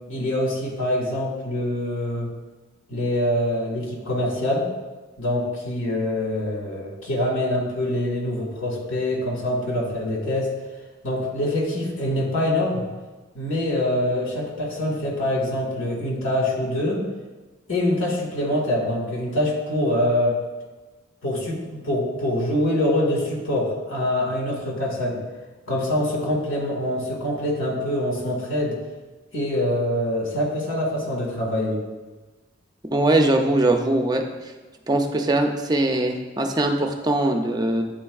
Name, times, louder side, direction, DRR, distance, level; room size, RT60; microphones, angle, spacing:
voice 1, 0.1-2.3 2.9-4.7 5.2-10.5 11.0-12.8 13.4-17.0 17.7-20.4 21.2-25.2 25.7-28.7 29.3-31.8, left 1 dB, 85° left, -2 dB, 1.9 m, -24 dB
voice 2, 32.9-34.2 34.9-37.8, right 1 dB, 20° right, 3 dB, 0.4 m, -21 dB
10.0 x 4.3 x 2.3 m, 1.2 s
head